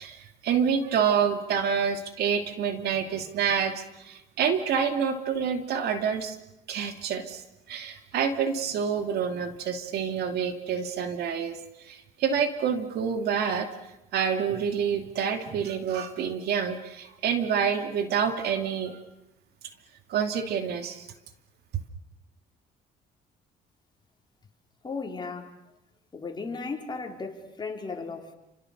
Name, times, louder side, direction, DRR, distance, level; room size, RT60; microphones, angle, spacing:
voice 1, 0.0-6.4 6.7-13.7 14.1-19.0 20.1-21.1, right 7 dB, 70° right, 7 dB, 2.6 m, -28 dB
voice 2, 24.8-25.5 26.1-28.3, left 4 dB, 25° left, 2 dB, 4.1 m, -35 dB
30.0 x 27.0 x 6.7 m, 0.91 s
cardioid pair, 110°, 17 cm